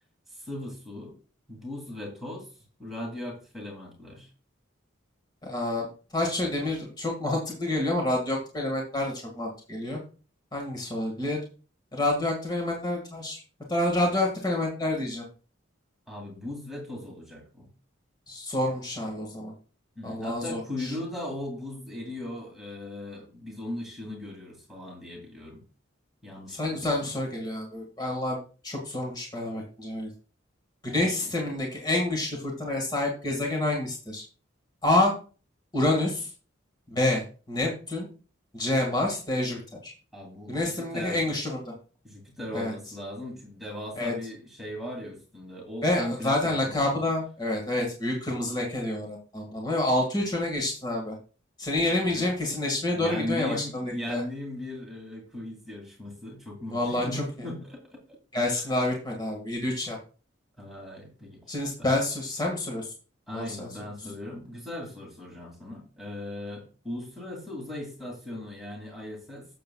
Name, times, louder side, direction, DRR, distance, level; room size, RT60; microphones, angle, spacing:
voice 1, 0.3-1.2 1.5-2.5 2.8-4.3 16.1-17.7 20.0-25.6 26.2-27.1 31.2-31.3 40.1-41.3 42.0-46.8 51.8-52.3 52.9-58.2 58.5-58.6 60.6-61.9 63.3-69.5, left 1 dB, ahead, -2 dB, 2.5 m, -38 dB
voice 2, 5.4-5.9 6.1-10.0 10.5-11.4 11.9-13.4 13.7-15.2 18.3-19.5 20.0-20.9 26.5-28.4 28.6-30.1 30.8-34.2 34.8-35.1 35.7-36.3 36.9-38.1 38.5-39.9 40.5-41.7 42.5-42.7 44.0-44.1 45.8-51.1 51.6-54.2 56.7-57.2 58.3-60.0 61.5-62.9 63.3-63.7, left 1 dB, 20° left, 0 dB, 1.8 m, -28 dB
11.5 x 7.9 x 2.3 m, 0.36 s
head